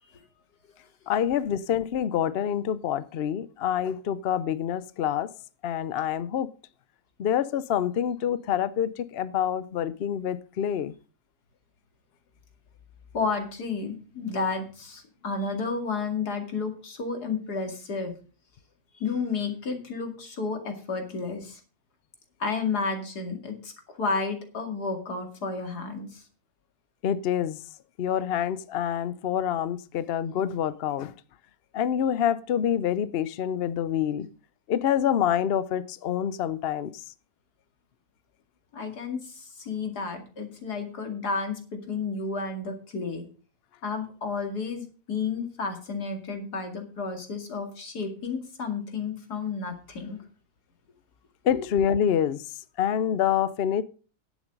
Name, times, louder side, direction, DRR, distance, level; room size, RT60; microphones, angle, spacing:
voice 1, 1.1-5.3 5.6-6.5 7.2-10.9 27.0-27.6 28.0-31.1 31.7-34.3 34.7-37.0 51.4-52.4 52.8-53.8, left 9 dB, 60° left, 0.6 m, -26 dB
voice 2, 13.1-18.1 19.0-21.6 22.4-26.2 38.7-43.3 43.8-50.2 51.5-51.6, left 4 dB, 85° left, 2.9 m, -31 dB
10.5 x 8.3 x 5.2 m
omnidirectional pair, 1.7 m